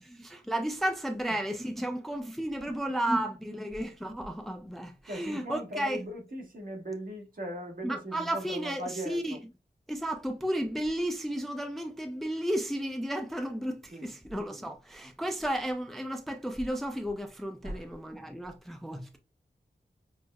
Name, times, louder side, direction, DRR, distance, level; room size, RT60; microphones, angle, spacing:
voice 1, 0.0-6.0 7.8-9.4 9.9-19.2, right 1 dB, ahead, 0.4 m, -33 dB
voice 2, 2.6-3.1 3.5-3.6 5.1-9.4 13.9-14.2 14.5-14.7 17.6-18.0, equal, 55° right, 1.2 m, -40 dB
6.1 x 2.1 x 2.3 m
wide cardioid pair, 95°, 18 cm